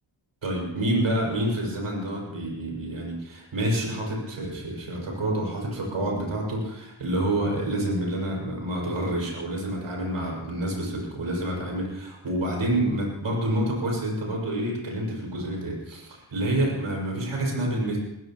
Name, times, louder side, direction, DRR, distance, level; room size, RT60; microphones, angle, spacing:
voice 1, 0.4-18.0, right 1 dB, 85° right, -1 dB, 5.9 m, -28 dB
22.0 x 15.5 x 3.0 m, 0.87 s
cardioid pair, 70°, 47 cm